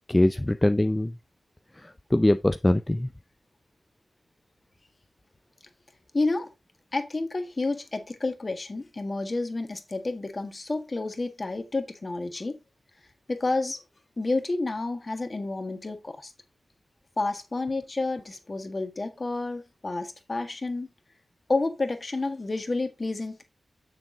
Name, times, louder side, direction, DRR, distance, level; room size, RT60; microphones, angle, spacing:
voice 1, 0.1-1.1 2.1-3.1, left 1 dB, 15° left, 0.5 m, -22 dB
voice 2, 6.1-6.5 6.9-12.5 13.3-13.8 14.2-16.3 17.2-20.9 21.5-23.4, left 3 dB, 40° left, 1.5 m, -30 dB
6.9 x 6.2 x 3.7 m
cardioid pair, 60°, 0 cm